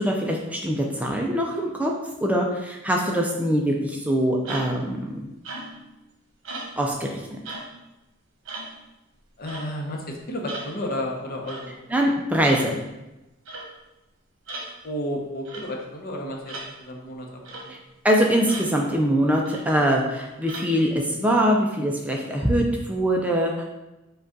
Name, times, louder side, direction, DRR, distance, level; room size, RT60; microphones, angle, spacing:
voice 1, 0.0-1.9 2.2-5.3 6.8-7.4 11.9-12.8 17.7-17.8 18.0-23.6, equal, 5° right, 0 dB, 0.3 m, -23 dB
sound 1, 4.4-4.9 5.4-5.9 6.4-6.8 7.5-7.7 8.5-8.7 9.5-9.7 10.5-10.7 11.5-11.7 12.5-12.7 13.5-13.7 14.5-14.7 15.5-15.7 16.5-16.7 17.5-17.7 18.5-18.7 19.5-19.7 20.5-20.7, right 2 dB, 65° right, 1.0 m, -36 dB
voice 2, 9.4-11.8 14.8-17.8, left 1 dB, 45° left, 0 dB, 0.7 m, -32 dB
5.0 x 2.3 x 3.8 m, 0.99 s
head